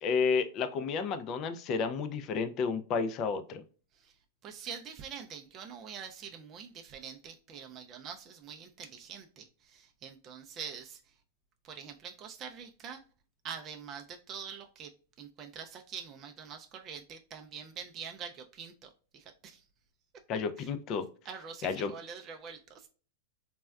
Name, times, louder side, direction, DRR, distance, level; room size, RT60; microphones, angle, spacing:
voice 1, 0.0-3.6 20.3-21.1 21.6-21.9, left 5 dB, 40° left, 0.3 m, -31 dB
voice 2, 4.4-11.0 11.6-13.0 13.4-14.9 15.2-19.6 20.6-20.7 21.2-22.9, right 7 dB, 30° right, 0.4 m, -45 dB
3.3 x 2.2 x 2.3 m
hypercardioid pair, 125°, 0 cm